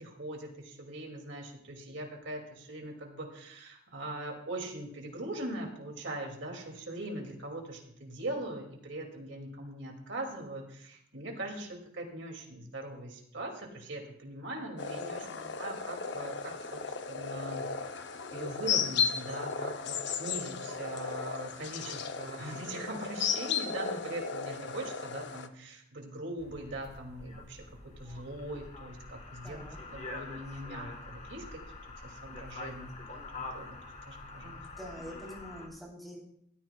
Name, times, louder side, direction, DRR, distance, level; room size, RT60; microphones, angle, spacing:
voice 1, 0.0-16.8 17.1-18.0 18.3-31.6 32.0-33.8 34.1-34.6, right 1 dB, 60° right, 2 dB, 2.4 m, -41 dB
sound 1, 14.8-25.5, left 6 dB, 55° left, 0.7 m, -35 dB
sound 2, 26.4-35.7, left 3 dB, 35° left, 1.3 m, -46 dB
voice 2, 29.4-29.8 34.4-36.2, equal, ahead, -3 dB, 3.3 m, -46 dB
16.0 x 13.5 x 2.3 m, 0.70 s
head